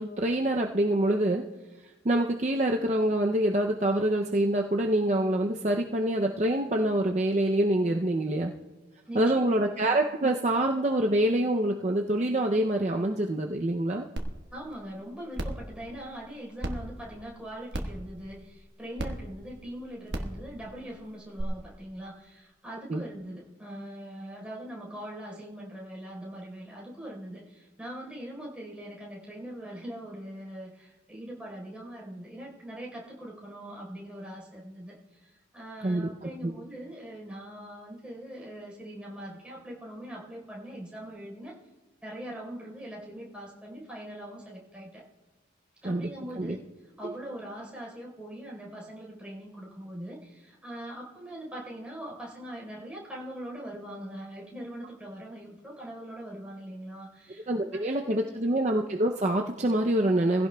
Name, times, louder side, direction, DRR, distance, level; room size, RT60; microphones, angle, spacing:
voice 1, 0.0-1.4 2.0-8.5 9.1-14.1 22.9-23.0 35.8-36.1 36.4-36.5 45.8-46.1 46.4-46.6 47.0-47.1 57.5-60.5, right 1 dB, 35° right, 2 dB, 0.5 m, -26 dB
voice 2, 9.1-9.5 14.5-41.6 42.0-45.0 45.8-46.6 47.0-58.2, right 1 dB, 5° right, -4 dB, 4.0 m, -42 dB
sound 1, 14.2-14.3 14.7-14.8 15.3-15.6 16.6-16.7 17.7-18.0 19.0-19.1 20.1-20.3 21.4-21.5, right 1 dB, 65° right, 1.3 m, -32 dB
21.0 x 16.0 x 2.3 m, 1.1 s
head